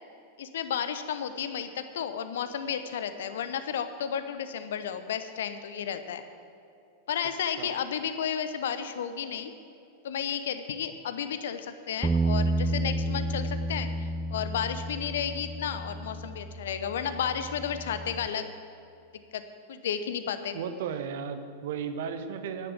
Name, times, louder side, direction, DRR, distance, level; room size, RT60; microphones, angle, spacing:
voice 1, 0.4-6.2 7.1-9.5 10.0-18.5 19.3-19.4 19.7-20.6, left 8 dB, 60° left, 10 dB, 0.8 m, -32 dB
Bass guitar, 12.0-18.3, right 2 dB, 10° right, 0.5 m, -31 dB
voice 2, 20.5-22.7, right 7 dB, 55° right, 9 dB, 1.0 m, -35 dB
10.5 x 10.5 x 8.0 m, 2.7 s
figure-of-eight pair, 90°, 0 cm